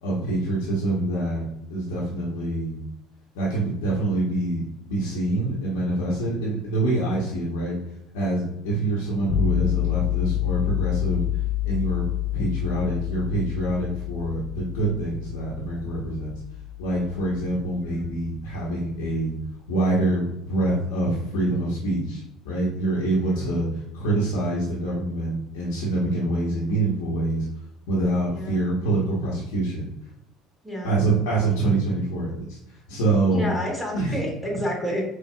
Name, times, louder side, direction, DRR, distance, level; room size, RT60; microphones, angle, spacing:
voice 1, 0.0-1.4 1.7-2.8 3.3-7.7 8.1-11.3 11.6-12.0 12.3-16.3 16.8-19.3 19.7-27.5 27.9-29.8 30.8-33.5 33.9-34.2, right 2 dB, 90° left, -8 dB, 1.0 m, -25 dB
sound 1, 9.3-19.2, left 12 dB, 60° left, 0.4 m, -28 dB
voice 2, 33.3-35.0, equal, 5° left, -2 dB, 1.4 m, -30 dB
4.5 x 2.2 x 2.3 m, 0.82 s
supercardioid pair, 95°, 0 cm